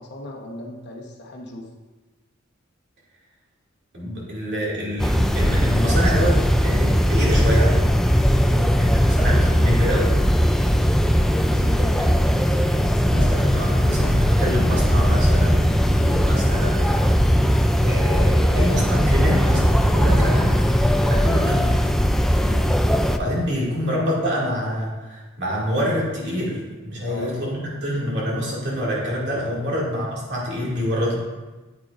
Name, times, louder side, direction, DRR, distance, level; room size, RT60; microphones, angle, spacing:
voice 1, 0.0-1.6 8.4-8.7 10.6-10.8 11.4-12.5 20.1-20.3 22.4-22.7 27.1-28.1 29.5-29.9, left 1 dB, 55° left, 1 dB, 1.1 m, -37 dB
voice 2, 3.9-7.9 8.8-10.1 12.0-12.1 13.0-16.9 17.8-20.6 21.0-21.7 23.2-26.6 26.8-31.1, equal, 60° right, -4 dB, 2.3 m, -26 dB
sound 1, 5.0-23.2, equal, ahead, 0.3 m, -19 dB
9.1 x 8.3 x 2.5 m, 1.2 s
head